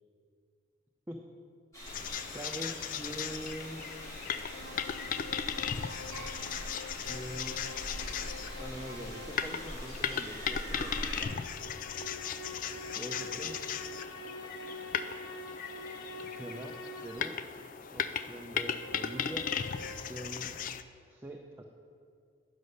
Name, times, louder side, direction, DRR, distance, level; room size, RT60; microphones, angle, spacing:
sound 1, 1.7-11.2, equal, 20° left, 2.3 m, -43 dB
sound 2, 1.9-20.8, left 8 dB, 50° left, 0.3 m, -37 dB
voice 1, 2.3-3.8 7.0-7.7 8.6-11.5 12.9-13.6 15.8-16.7 17.0-17.4 17.9-19.5 19.8-20.5 21.1-21.6, equal, 10° right, 1 dB, 0.5 m, -44 dB
sound 3, 4.5-9.9 10.9-17.4 18.4-20.0, left 1 dB, 90° left, 1.2 m, -46 dB
9.6 x 5.4 x 6.4 m, 2.3 s
head